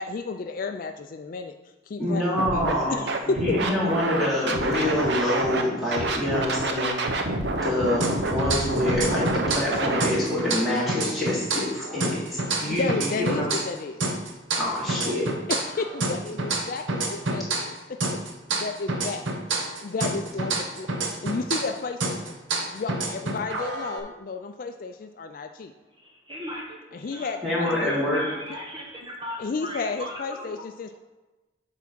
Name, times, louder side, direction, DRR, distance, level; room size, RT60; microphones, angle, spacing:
voice 1, 0.0-1.5 1.9-2.2 2.5-3.6 12.7-14.1 15.5-18.0 18.5-19.3 19.6-22.3 22.7-25.7 26.9-27.9 28.5-28.6 29.4-31.0, left 4 dB, 45° left, 6 dB, 0.3 m, -32 dB
voice 2, 2.0-3.0 3.4-6.9 7.6-13.5 14.6-15.3 27.4-28.2, left 1 dB, ahead, -9 dB, 2.6 m, -26 dB
Scratching (performance technique), 2.4-2.7 3.1-5.6 5.9-10.1, right 2 dB, 60° right, 0.8 m, -27 dB
sound 1, 8.0-9.7 10.0-13.7 14.0-17.8 18.0-21.7 22.0-24.0, right 2 dB, 85° right, 1.0 m, -28 dB
voice 3, 22.5-22.8 24.0-24.1 25.9-30.6, equal, 25° right, -3 dB, 1.1 m, -39 dB
8.2 x 3.6 x 6.0 m, 1.1 s
head